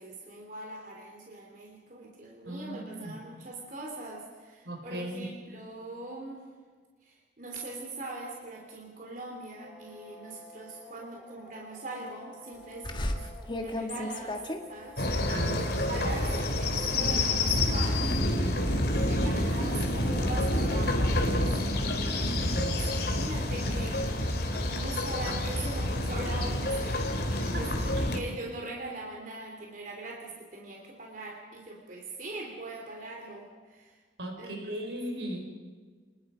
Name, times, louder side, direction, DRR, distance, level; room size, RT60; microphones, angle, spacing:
voice 1, 0.0-6.4 7.0-14.4 14.7-18.1 18.9-33.9 34.4-34.8, right 2 dB, 50° right, -1 dB, 3.4 m, -42 dB
voice 2, 2.4-3.2 4.6-5.3 15.3-16.1 22.3-22.8 27.5-27.7 27.9-28.0 34.2-35.5, right 1 dB, 80° right, 2 dB, 5.1 m, -37 dB
sound 1, 9.6-27.6, left 1 dB, 10° right, 4.3 m, -51 dB
sound 2, 12.8-18.2 18.6-19.0 19.4-21.4 21.9-24.1, left 1 dB, 25° left, 1.6 m, -39 dB
sound 3, 15.0-28.2, left 1 dB, 65° left, 2.8 m, -28 dB
28.0 x 20.5 x 5.1 m, 1.5 s
head